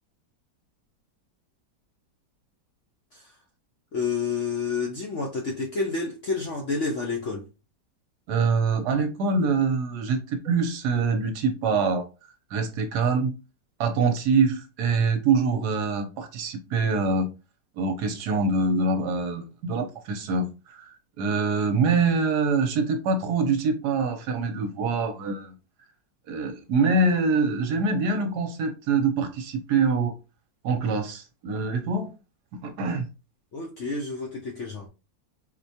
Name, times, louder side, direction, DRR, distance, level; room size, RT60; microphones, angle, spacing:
voice 1, 3.9-7.4 33.5-34.9, left 4 dB, 65° left, 0.7 m, -29 dB
voice 2, 8.3-12.0 12.5-13.4 13.8-17.3 17.8-25.6 26.3-30.1 30.6-32.1 32.5-33.1, right 4 dB, 75° right, 1.1 m, -25 dB
4.6 x 2.2 x 2.7 m
omnidirectional pair, 1.9 m